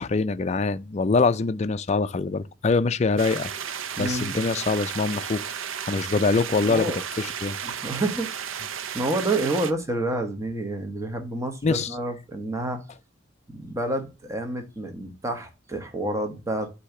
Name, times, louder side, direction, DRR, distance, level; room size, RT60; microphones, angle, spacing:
voice 1, 0.0-3.5 4.0-5.4 5.9-6.9 7.2-7.6 11.6-11.9, left 4 dB, 35° left, 0.4 m, -24 dB
sound 1, 3.2-9.7, right 8 dB, 85° right, 0.6 m, -33 dB
voice 2, 3.9-4.4 6.6-7.0 7.6-8.5 8.9-12.8 13.5-16.7, right 2 dB, 15° right, 1.0 m, -29 dB
8.3 x 2.8 x 5.8 m
head